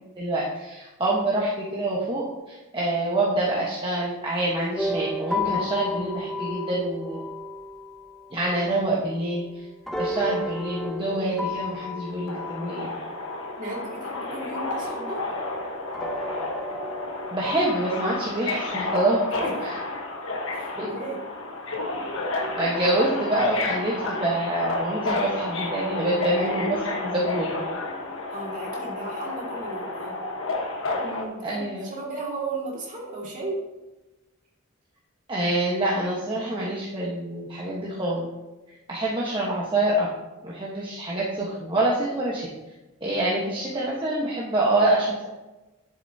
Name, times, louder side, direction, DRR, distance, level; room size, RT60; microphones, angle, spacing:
voice 1, 0.2-7.2 8.3-9.4 10.0-12.9 17.3-19.2 19.6-19.7 20.8-20.9 22.6-27.5 31.4-31.9 35.3-38.3 38.9-40.1 40.4-42.5 43.0-45.3, right 1 dB, 25° right, -5 dB, 1.3 m, -26 dB
sound 1, 4.8-14.8 15.9-18.4, left 2 dB, ahead, 0.9 m, -33 dB
Subway metro underground, 12.3-31.2, left 2 dB, 65° left, 1.3 m, -31 dB
voice 2, 13.6-15.3 19.4-19.7 20.5-21.3 28.3-30.2 31.0-33.6, right 2 dB, 40° right, -3 dB, 2.4 m, -35 dB
10.5 x 7.8 x 2.8 m, 1.0 s
head